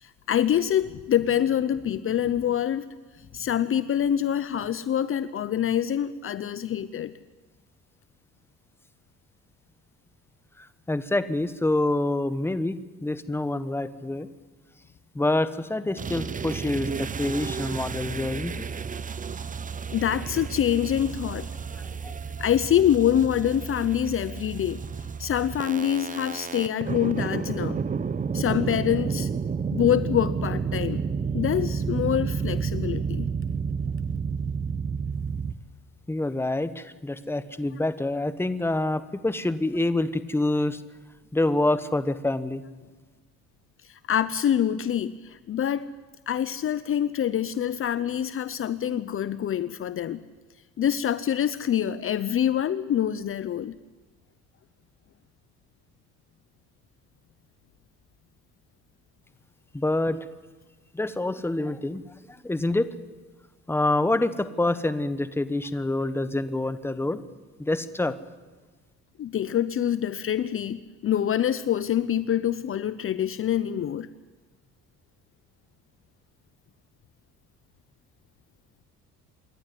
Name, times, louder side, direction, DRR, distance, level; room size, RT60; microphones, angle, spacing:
voice 1, 0.0-2.9 3.3-7.1 19.9-21.5 22.4-24.8 25.2-27.8 28.3-29.3 29.7-31.0 31.3-33.3 44.1-45.9 46.3-50.2 50.8-53.8 69.2-74.1, left 10 dB, 45° left, 15 dB, 0.7 m, -25 dB
voice 2, 10.6-14.3 15.1-18.5 21.8-22.1 36.1-40.8 41.3-42.6 59.7-60.2 60.9-62.0 62.3-63.0 63.7-67.2 67.6-68.2, left 2 dB, 5° left, 13 dB, 1.2 m, -27 dB
sound 1, 16.0-35.5, right 6 dB, 25° right, 0.8 m, -31 dB
27.0 x 11.5 x 9.9 m, 1.3 s
cardioid pair, 95°, 31 cm